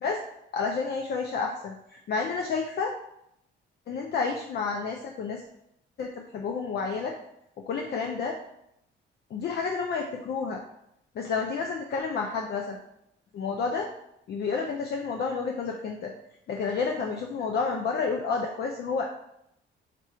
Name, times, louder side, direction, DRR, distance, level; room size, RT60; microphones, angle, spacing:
voice 1, 0.5-2.9 3.9-5.4 6.0-7.1 7.7-8.4 9.3-10.6 11.2-12.8 13.3-13.9 14.3-16.1 16.5-19.1, left 5 dB, 55° left, 2 dB, 0.5 m, -30 dB
3.7 x 2.4 x 4.2 m, 0.80 s
cardioid pair, 90°, 20 cm